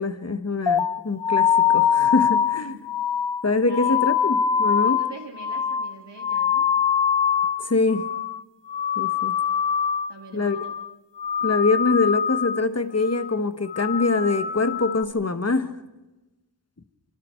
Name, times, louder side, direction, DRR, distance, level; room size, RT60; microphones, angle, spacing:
voice 1, 0.0-2.7 3.4-5.0 7.6-8.1 9.0-9.4 10.3-10.6 11.4-15.7, left 3 dB, 35° left, 10 dB, 1.4 m, -24 dB
sound 1, 0.7-7.6 7.9-8.4 8.7-10.1 10.4-10.9 11.2-12.6 13.0-13.3 13.7-15.0, left 8 dB, 85° left, 0.8 m, -23 dB
voice 2, 3.7-4.0 4.8-6.7 10.1-10.6, right 3 dB, 80° right, 1 dB, 3.3 m, -43 dB
28.0 x 24.5 x 4.5 m, 1.1 s
wide cardioid pair, 50°, 42 cm